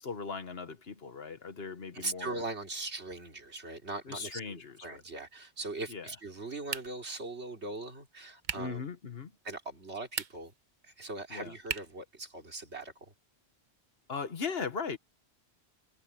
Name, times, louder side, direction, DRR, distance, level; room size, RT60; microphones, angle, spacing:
voice 1, 0.0-2.4 4.1-5.0 5.9-6.1 8.5-9.3 11.3-11.5 14.1-15.0, left 5 dB, 60° left, 1.5 m, -38 dB
voice 2, 1.9-8.8 9.4-10.5 10.8-13.1, right 2 dB, 75° right, 3.3 m, -40 dB
sound 1, 6.7-7.2 8.4-8.8 10.0-10.6 11.7-12.1, right 6 dB, 45° right, 0.9 m, -38 dB
omnidirectional pair, 1.1 m